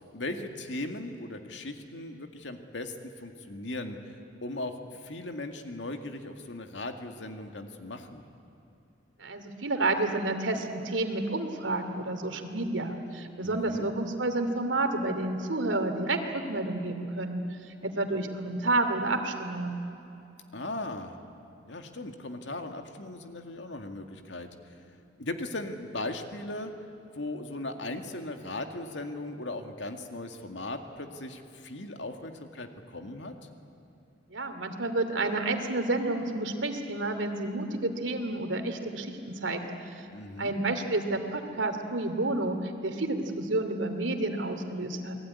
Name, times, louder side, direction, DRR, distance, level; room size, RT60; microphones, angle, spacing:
voice 1, 0.1-4.1 4.4-8.2 13.4-13.9 20.5-21.2 21.7-24.7 25.2-26.7 27.1-33.3 40.1-40.6, left 2 dB, 70° left, 5 dB, 2.2 m, -38 dB
voice 2, 9.2-19.8 34.3-39.9 40.4-45.2, right 2 dB, 80° right, 6 dB, 2.6 m, -30 dB
28.5 x 20.5 x 9.8 m, 2.8 s
head